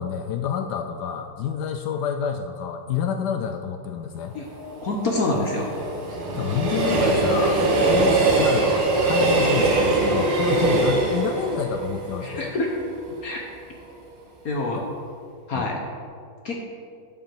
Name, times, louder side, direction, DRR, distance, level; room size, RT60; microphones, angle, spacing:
voice 1, 0.0-4.3 6.4-7.6 7.9-12.5 14.7-14.9 15.5-15.7, left 8 dB, 80° left, 7 dB, 0.9 m, -28 dB
Train, 4.4-13.4 13.8-13.9, right 2 dB, 80° right, 2.3 m, -22 dB
voice 2, 4.8-5.7 12.2-12.7 13.2-13.4 14.4-14.8 15.5-15.8 16.4-16.6, left 2 dB, 55° left, 0 dB, 1.2 m, -26 dB
8.9 x 5.7 x 6.9 m, 2.2 s
omnidirectional pair, 2.3 m